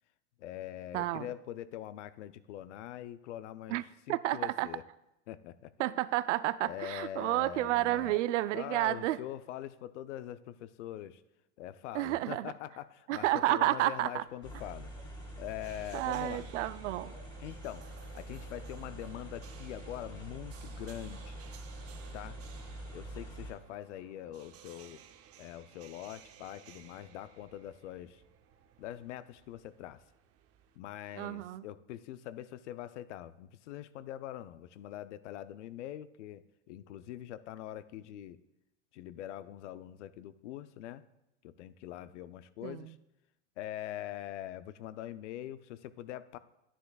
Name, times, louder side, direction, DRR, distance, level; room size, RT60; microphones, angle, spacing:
voice 1, 0.4-3.8 4.1-4.8 5.3-5.7 6.6-8.2 8.5-11.2 11.6-14.9 15.4-16.5 17.4-17.9 18.1-21.4 22.1-22.4 22.9-25.0 25.4-28.2 28.8-30.0 30.8-38.4 38.9-41.0 41.4-43.0 43.6-46.4, left 12 dB, 80° left, 14 dB, 0.6 m, -43 dB
voice 2, 0.9-1.3 3.7-3.8 4.1-4.7 5.8-9.2 11.9-12.5 13.1-14.2 15.9-17.2 31.2-31.6 42.6-42.9, right 15 dB, 85° right, 16 dB, 0.5 m, -31 dB
sound 1, 14.1-30.8, right 9 dB, 40° right, 0.8 m, -57 dB
sound 2, 14.4-23.5, right 1 dB, 15° left, 2.0 m, -45 dB
10.0 x 9.6 x 2.3 m, 0.88 s
supercardioid pair, 110°, 35 cm